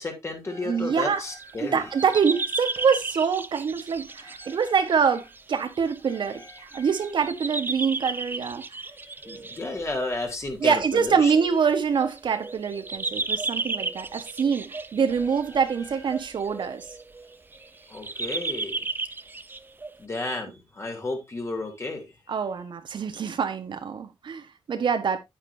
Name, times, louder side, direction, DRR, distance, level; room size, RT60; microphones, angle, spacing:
voice 1, 0.0-2.4 2.7-2.9 4.2-4.9 6.1-7.1 9.0-11.3 15.5-16.3 17.7-18.8 20.0-22.1, left 2 dB, 30° left, 3.1 m, -34 dB
voice 2, 0.6-1.2 1.6-8.6 10.6-16.8 22.3-25.2, right 6 dB, 60° right, 1.3 m, -25 dB
sound 1, 1.0-1.5 2.0-20.0, right 3 dB, 20° right, 0.6 m, -34 dB
9.1 x 8.8 x 2.7 m
cardioid pair, 105°, 9 cm